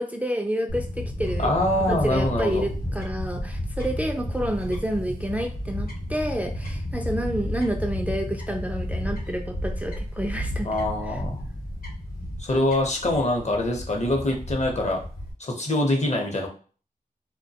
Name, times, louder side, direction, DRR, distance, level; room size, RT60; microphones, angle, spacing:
voice 1, 0.0-1.6 1.9-10.7 11.1-11.2, right 1 dB, 10° right, 4 dB, 0.3 m, -29 dB
Fowl / Bird, 0.7-15.3, left 1 dB, 70° left, 0.9 m, -32 dB
voice 2, 1.4-2.7 10.6-11.4 12.4-15.0 15.4-16.5, left 1 dB, 50° left, 1 dB, 0.8 m, -24 dB
2.3 x 2.1 x 2.7 m, 0.39 s
cardioid pair, 50°, 15 cm